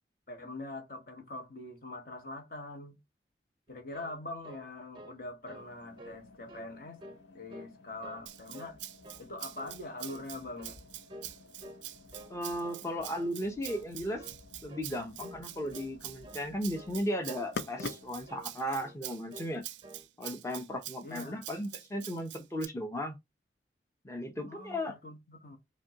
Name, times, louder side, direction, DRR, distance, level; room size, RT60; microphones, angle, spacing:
voice 1, 0.3-3.0 3.7-7.0 7.3-8.8 9.2-10.8 21.0-21.4 24.5-25.6, left 2 dB, 55° left, 1.0 m, -43 dB
sound 1, 3.7-5.2 5.5-5.7 6.0-6.7 7.0-7.7 8.0-8.8 9.0-9.3 9.6-10.3 10.6-10.8 11.1-11.4 11.6-12.4 12.6-12.9 13.1-13.4 13.7-13.9 14.2-14.4 14.7-14.9 15.2-15.4 15.7-15.9 16.2-16.4 16.7-17.0 17.2-17.5 17.8-18.5 18.8-19.0 19.3-19.6 19.8-20.1, equal, 25° right, 0.5 m, -50 dB
sound 2, 5.6-18.4, left 4 dB, 90° left, 0.5 m, -49 dB
Rattle (instrument), 8.3-22.7, right 15 dB, 85° right, 0.4 m, -46 dB
voice 2, 12.3-14.3 14.6-19.6 20.2-23.2 24.0-24.9, equal, 15° left, 0.6 m, -36 dB
5.1 x 2.2 x 2.8 m
head